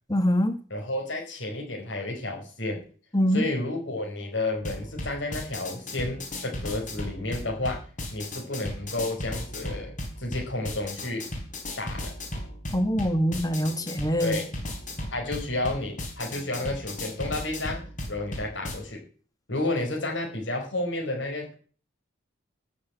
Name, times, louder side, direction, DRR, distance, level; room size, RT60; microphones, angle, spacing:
voice 1, 0.1-0.6 3.1-3.5 12.7-14.4, equal, 20° left, 9 dB, 1.5 m, -24 dB
voice 2, 0.7-2.8 3.3-7.8 8.1-11.2 11.8-12.1 14.2-14.5 15.1-17.8 18.1-19.0 19.5-21.6, left 2 dB, 65° left, 1 dB, 4.5 m, -31 dB
sound 1, 4.6-18.7, left 1 dB, 40° left, 3.9 m, -36 dB
13.5 x 6.9 x 9.2 m, 0.43 s
head